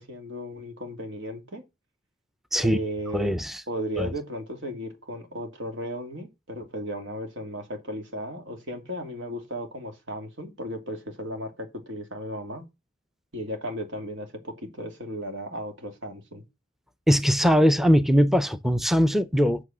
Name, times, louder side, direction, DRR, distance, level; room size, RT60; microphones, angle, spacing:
voice 1, 0.0-1.6 2.6-3.3 3.7-12.6 13.3-16.4, equal, 90° right, 2.6 m, -35 dB
voice 2, 3.1-3.6 4.0-4.1 17.1-19.6, equal, ahead, 0.5 m, -21 dB
8.4 x 6.5 x 6.1 m
head